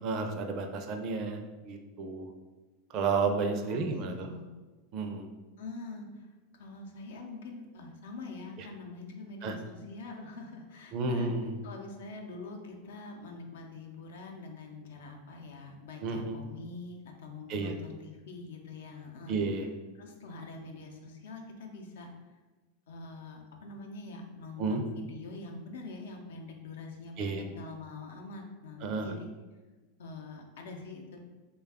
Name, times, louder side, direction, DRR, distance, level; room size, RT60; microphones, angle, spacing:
voice 1, 0.0-1.4 1.6-2.3 2.9-4.3 4.9-5.3 9.4-9.5 10.9-11.5 16.0-16.4 17.5-17.7 19.3-19.7 24.6-24.8 27.2-27.4 28.8-29.2, right 4 dB, 50° right, 5 dB, 0.4 m, -31 dB
voice 2, 3.7-4.5 5.6-6.3 6.5-11.3 11.6-19.4 20.0-22.1 22.9-29.3 30.0-31.2, left 3 dB, 80° left, 2 dB, 0.6 m, -44 dB
3.3 x 2.3 x 3.5 m, 1.2 s
hypercardioid pair, 105°, 0 cm